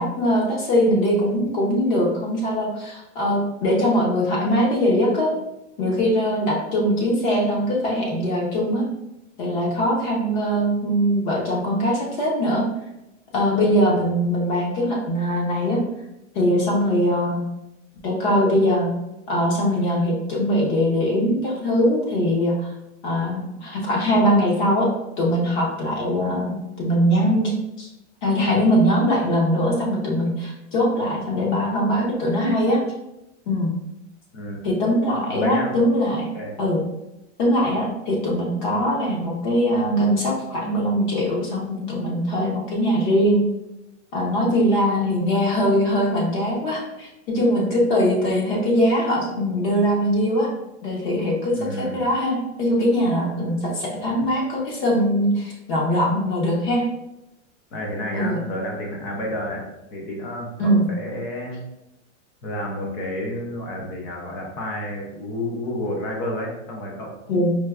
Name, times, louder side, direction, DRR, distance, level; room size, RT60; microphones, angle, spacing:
voice 1, 0.0-5.3 5.8-8.9 9.4-12.7 13.3-15.8 16.3-17.4 18.0-18.9 19.3-22.7 23.0-24.9 25.2-27.5 27.8-27.9 28.2-32.8 33.5-33.7 34.6-36.3 36.6-36.8 37.4-43.4 44.1-50.5 50.8-56.8 58.1-58.4 60.6-60.8 67.3-67.6, equal, 40° left, -2 dB, 0.7 m, -21 dB
voice 2, 34.3-34.7 35.3-35.8 36.3-36.6 51.6-52.0 57.7-61.6 62.4-67.1, left 1 dB, 25° left, 0 dB, 0.3 m, -30 dB
4.4 x 2.1 x 2.3 m, 0.92 s
supercardioid pair, 160°, 36 cm